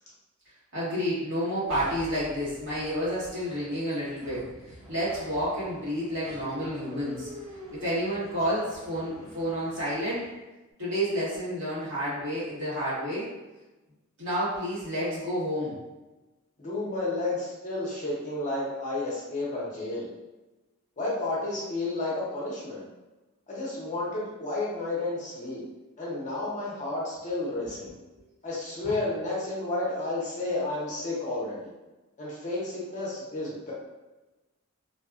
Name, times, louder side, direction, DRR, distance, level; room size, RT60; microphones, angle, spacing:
voice 1, 0.7-7.3 7.8-10.3 10.8-13.3 14.2-15.7, equal, 60° right, -10 dB, 1.4 m, -30 dB
sound 1, 1.7-10.4, equal, ahead, 1.0 m, -47 dB
voice 2, 16.6-20.1 21.0-22.8 23.5-25.6 26.0-27.9 28.4-31.7 32.2-33.7, left 2 dB, 35° left, -6 dB, 0.7 m, -31 dB
2.7 x 2.3 x 2.4 m, 1.1 s
head